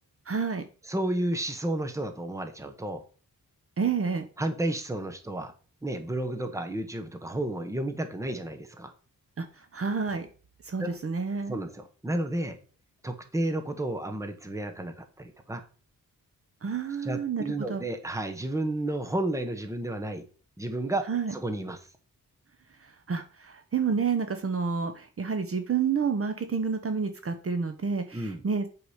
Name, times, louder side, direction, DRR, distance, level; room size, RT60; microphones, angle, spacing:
voice 1, 0.3-0.6 3.8-4.2 9.4-9.5 9.7-10.3 10.6-11.6 16.6-17.8 21.1-21.3 23.1-28.7, right 5 dB, 40° right, 8 dB, 0.8 m, -29 dB
voice 2, 0.9-3.0 4.4-5.5 5.8-8.9 10.8-11.0 11.5-12.6 13.0-15.6 17.0-20.2 20.6-21.0 21.3-21.8 28.1-28.4, right 1 dB, 10° right, 7 dB, 1.0 m, -32 dB
8.2 x 4.8 x 5.0 m, 0.39 s
wide cardioid pair, 135°, 35 cm